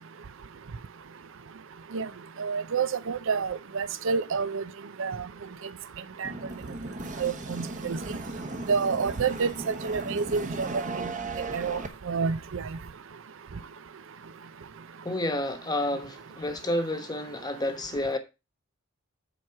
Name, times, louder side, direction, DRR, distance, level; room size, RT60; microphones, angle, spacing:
voice 1, 2.4-4.6 5.0-5.2 6.2-6.3 7.2-8.0 8.7-11.0 11.5-11.8 12.1-12.6, right 5 dB, 60° right, 0.5 m, -28 dB
sound 1, 6.2-11.9, right 2 dB, 35° right, 1.1 m, -36 dB
voice 2, 15.0-18.2, left 1 dB, 20° left, 1.1 m, -30 dB
7.6 x 4.6 x 5.8 m
head